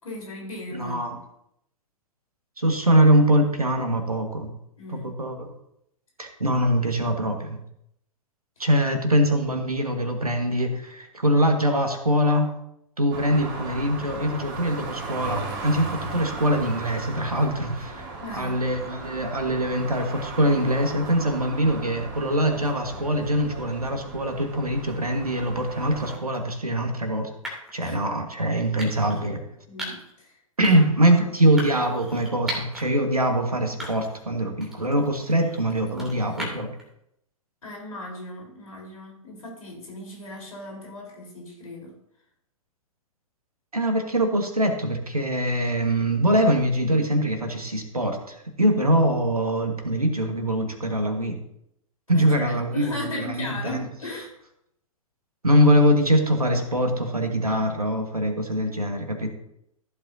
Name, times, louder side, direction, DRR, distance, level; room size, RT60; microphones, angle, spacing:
voice 1, 0.0-1.2 4.8-5.1 18.2-18.6 27.8-28.0 29.1-30.3 30.7-31.2 37.6-41.9 52.1-54.4, left 2 dB, 70° left, -1 dB, 4.1 m, -37 dB
voice 2, 0.7-1.1 2.6-4.5 4.9-5.5 6.2-7.6 8.6-12.5 13.0-27.3 27.7-29.4 30.6-36.7 43.7-51.4 52.1-53.9 55.4-59.3, equal, 85° right, 4 dB, 1.7 m, -23 dB
sound 1, 13.1-26.2, right 3 dB, 30° right, 3.8 m, -37 dB
sound 2, 26.1-26.4 27.4-27.8 28.8-29.2 29.8-30.1 30.6-31.0 31.6-32.8 33.3-33.4 33.8-34.3 34.6-36.8, equal, ahead, 2.8 m, -37 dB
14.5 x 8.2 x 2.8 m, 0.77 s
figure-of-eight pair, 110°, 18 cm